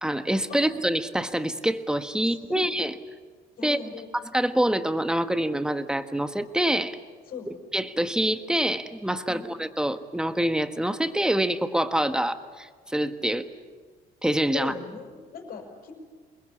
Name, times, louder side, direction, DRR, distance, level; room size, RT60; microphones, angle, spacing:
voice 1, 0.0-2.9 3.6-3.8 4.3-7.0 7.7-13.4 14.2-14.7, right 1 dB, 5° right, 9 dB, 1.5 m, -26 dB
voice 2, 2.2-2.7 3.6-4.1 7.3-7.5 9.2-9.5 14.5-15.9, left 5 dB, 60° left, 1 dB, 5.8 m, -39 dB
27.5 x 21.5 x 8.6 m, 1.5 s
cardioid pair, 110°, 17 cm